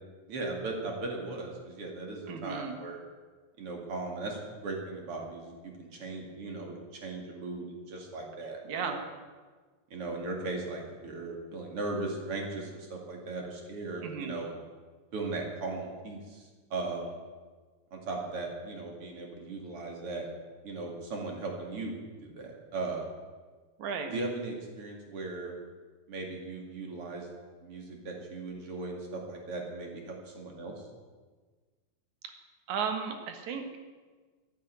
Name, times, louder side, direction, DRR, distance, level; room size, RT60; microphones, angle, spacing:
voice 1, 0.3-3.0 3.6-9.0 9.9-14.5 15.1-17.1 17.9-20.3 20.6-23.1 24.1-25.5 26.1-27.3 27.6-30.7, right 3 dB, 50° right, 1 dB, 3.2 m, -38 dB
voice 2, 2.3-2.7 8.6-9.0 14.0-14.4 23.8-24.1 32.7-33.8, right 6 dB, 75° right, 6 dB, 2.9 m, -34 dB
11.5 x 11.0 x 9.2 m, 1.4 s
omnidirectional pair, 3.4 m